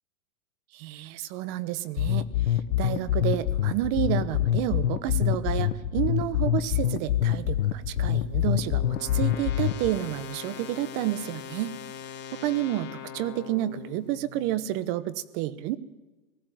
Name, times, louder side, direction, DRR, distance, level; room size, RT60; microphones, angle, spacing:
voice 1, 0.7-11.7 12.3-15.8, right 13 dB, 45° right, 18 dB, 1.1 m, -30 dB
sound 1, 2.0-10.0, left 11 dB, 85° left, 1.4 m, -25 dB
sound 2, 7.5-14.6, left 8 dB, 25° left, 2.5 m, -42 dB
19.0 x 15.0 x 9.1 m, 1.2 s
supercardioid pair, 145°, 40 cm